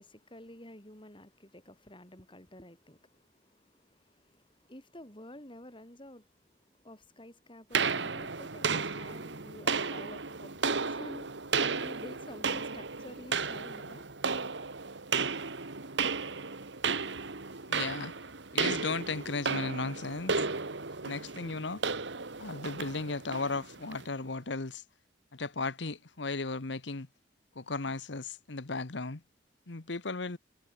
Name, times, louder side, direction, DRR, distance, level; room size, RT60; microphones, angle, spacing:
voice 1, 0.0-14.1, left 1 dB, 25° left, 6.6 m, -50 dB
sound 1, 7.7-24.1, right 5 dB, 70° right, 1.9 m, -34 dB
voice 2, 17.7-18.1 18.5-20.5 21.0-21.8 22.4-24.8 25.3-27.1 27.5-29.2 29.7-30.4, left 3 dB, 70° left, 1.2 m, -35 dB
head